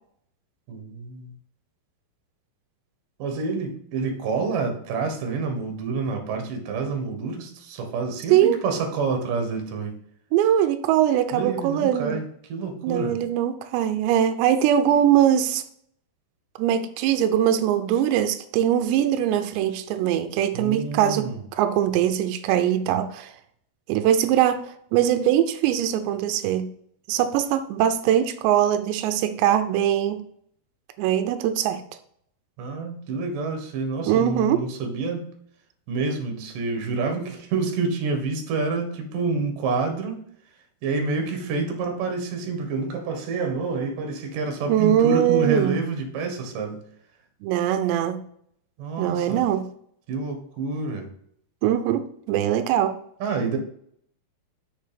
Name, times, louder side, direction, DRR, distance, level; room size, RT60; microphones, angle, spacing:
voice 1, 0.7-1.3 3.2-10.0 11.3-13.2 20.5-21.4 32.6-35.3 35.9-40.2 40.8-46.8 48.8-49.4 50.1-51.1 53.2-53.6, right 4 dB, 60° right, 4 dB, 2.8 m, -28 dB
voice 2, 8.3-8.6 10.3-12.2 12.8-15.6 16.6-23.3 23.9-24.6 24.9-26.7 27.1-30.2 31.0-31.8 34.1-34.6 44.7-45.8 47.4-48.2 49.0-49.7 51.6-53.0, right 10 dB, 90° right, 9 dB, 2.9 m, -22 dB
6.6 x 6.4 x 5.2 m, 0.67 s
omnidirectional pair, 4.9 m